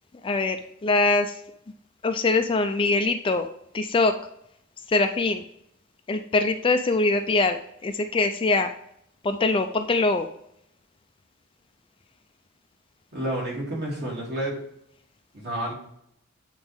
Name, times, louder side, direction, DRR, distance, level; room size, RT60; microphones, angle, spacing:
voice 1, 0.2-1.3 2.0-3.5 3.7-4.1 4.9-5.4 6.1-8.7 9.2-10.3, left 3 dB, 25° left, 7 dB, 0.4 m, -23 dB
voice 2, 13.1-14.6 15.3-15.7, right 1 dB, 50° right, -3 dB, 2.8 m, -30 dB
8.0 x 4.2 x 3.5 m, 0.74 s
head